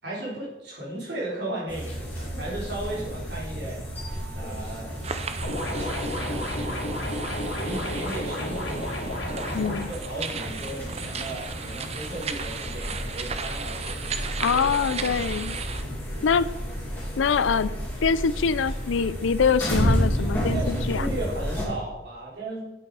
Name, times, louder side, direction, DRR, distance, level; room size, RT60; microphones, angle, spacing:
voice 1, 0.0-3.8 4.3-4.9 5.7-7.0 7.5-9.0 9.9-15.2 20.5-22.6, right 1 dB, 55° right, -6 dB, 3.8 m, -36 dB
sound 1, 1.7-21.6, equal, 10° left, 2.4 m, -32 dB
sound 2, 5.0-15.8, right 5 dB, 30° right, 0.6 m, -36 dB
sound 3, 5.4-9.8, left 1 dB, 55° left, 2.5 m, -31 dB
voice 2, 9.5-9.9 14.4-15.6 16.2-16.5 17.2-17.7 18.0-21.1, left 6 dB, 75° left, 16 dB, 0.4 m, -24 dB
8.7 x 8.4 x 4.8 m, 1.0 s
head